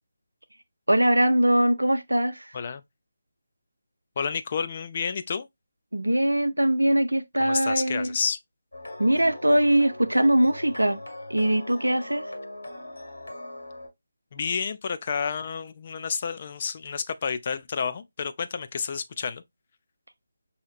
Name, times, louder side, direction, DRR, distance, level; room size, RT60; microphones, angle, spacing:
voice 1, 0.9-2.5 5.9-8.2 9.0-11.0 11.3-12.2, right 1 dB, 80° right, 0.6 m, -22 dB
voice 2, 4.2-5.5 7.4-8.4 14.3-19.4, left 6 dB, 35° left, 0.4 m, -30 dB
sound 1, 8.7-13.9, left 1 dB, 70° left, 1.4 m, -40 dB
6.3 x 2.8 x 2.4 m
figure-of-eight pair, 155°, 0 cm